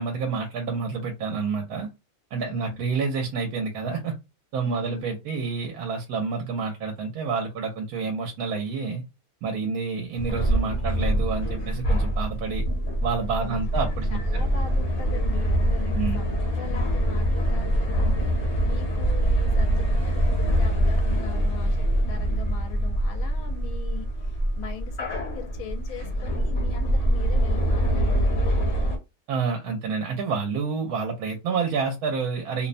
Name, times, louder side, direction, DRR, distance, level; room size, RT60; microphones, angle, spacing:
voice 1, 0.0-1.9 2.3-4.2 4.5-9.0 9.4-12.6 13.0-14.4 15.9-16.2 29.3-32.7, right 5 dB, 85° right, 3 dB, 1.1 m, -28 dB
voice 2, 2.4-2.8 4.6-5.0 13.4-13.6 13.8-28.9 32.6-32.7, left 6 dB, 80° left, 4 dB, 1.1 m, -42 dB
sound 1, 10.2-29.0, right 1 dB, 55° left, 1.2 m, -24 dB
2.7 x 2.1 x 2.5 m, 0.24 s
omnidirectional pair, 1.5 m